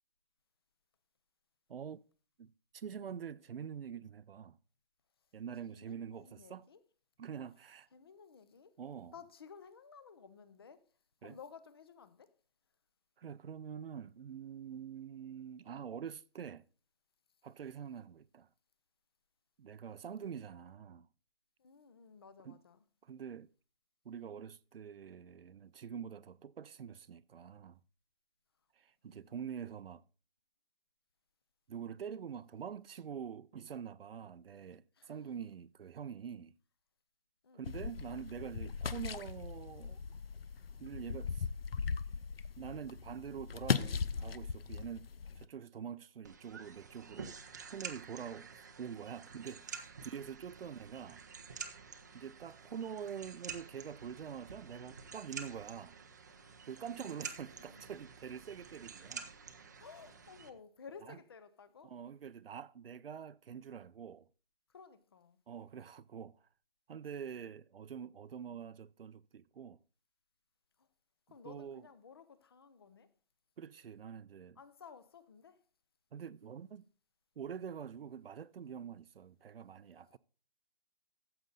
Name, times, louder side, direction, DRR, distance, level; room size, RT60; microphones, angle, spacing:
voice 1, 1.7-2.0 2.4-4.6 5.3-6.7 7.2-7.9 8.8-9.1 11.2-11.4 13.2-16.6 17.4-18.5 19.6-21.1 22.4-22.6 23.0-23.5 24.0-27.8 28.8-30.0 31.7-36.5 37.5-40.0 40.8-41.5 42.6-47.4 47.7-51.2 52.1-56.0 56.7-59.3 61.1-61.2 61.8-64.3 65.5-66.4 66.9-69.8 71.4-71.8 73.6-74.6 76.1-76.8 77.4-80.2, right 7 dB, 75° right, 0.6 m, -45 dB
voice 2, 5.7-6.8 7.9-8.7 9.1-10.9 11.2-12.3 21.6-22.8 29.0-29.4 34.9-35.2 37.4-38.1 56.9-58.0 59.8-61.9 64.7-65.4 70.8-70.9 71.3-73.1 74.6-75.6 80.1-80.2, left 6 dB, 25° left, 0.6 m, -55 dB
sound 1, 37.6-45.5, left 6 dB, 80° left, 0.8 m, -38 dB
sound 2, 46.2-60.5, right 5 dB, 20° right, 0.5 m, -49 dB
13.5 x 7.7 x 3.9 m
hypercardioid pair, 165°, 29 cm